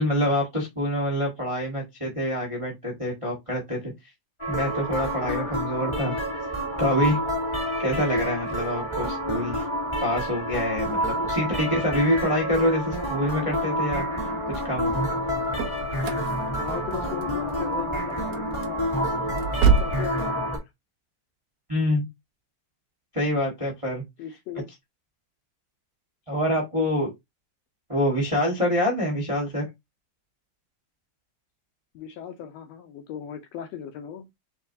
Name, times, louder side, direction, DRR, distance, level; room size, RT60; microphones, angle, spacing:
voice 1, 0.0-3.9 4.5-6.1 6.8-7.2 7.8-9.7 10.0-14.0 14.5-15.1 21.7-22.1 23.1-24.0 26.3-27.1 27.9-29.7, equal, 30° right, 0.5 m, -26 dB
sound 1, 4.4-20.6, equal, 25° left, 0.6 m, -28 dB
sound 2, 15.1-20.1, right 6 dB, 80° right, 1.4 m, -27 dB
voice 2, 16.6-18.9 19.6-20.7 24.2-24.7 31.9-34.2, left 9 dB, 75° left, 1.7 m, -38 dB
4.5 x 3.7 x 2.7 m
omnidirectional pair, 3.4 m